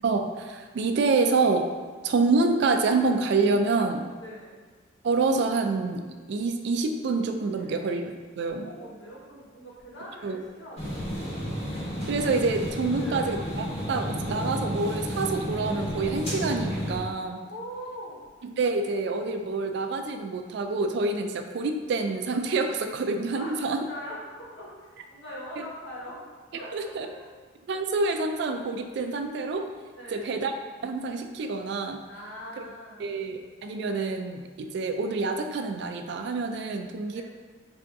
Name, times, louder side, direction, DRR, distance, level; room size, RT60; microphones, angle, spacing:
voice 1, 0.0-1.7 2.0-4.0 5.0-8.7 10.2-10.4 12.1-17.4 18.6-23.8 26.7-27.1 27.7-29.7 30.1-30.5 30.8-32.0 32.6-32.7 33.0-37.2, right 3 dB, 55° right, 6 dB, 0.3 m, -27 dB
voice 2, 4.2-4.6 7.5-8.0 8.6-11.1 12.9-13.4 17.1-18.2 23.3-26.3 26.5-27.4 29.9-30.5 32.1-33.2 37.1-37.2, equal, 70° left, -5 dB, 1.1 m, -42 dB
sound 1, 10.8-17.0, equal, 30° left, 1.0 m, -32 dB
3.4 x 2.6 x 4.5 m, 1.5 s
head